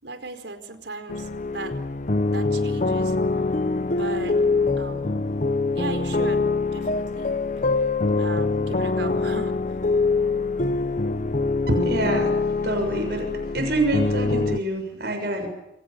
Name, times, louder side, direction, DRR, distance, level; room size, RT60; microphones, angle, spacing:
voice 1, 0.0-1.3 1.5-1.7 2.3-3.1 3.9-4.4 4.8-5.3 5.7-6.4 6.7-7.3 8.2-9.6, right 3 dB, 85° right, 8 dB, 4.7 m, -36 dB
sound 1, 1.1-14.6, left 3 dB, 45° left, 1.0 m, -24 dB
voice 2, 11.7-12.3 12.6-15.5, right 1 dB, 65° right, 5 dB, 6.9 m, -26 dB
29.0 x 26.0 x 7.0 m, 0.91 s
head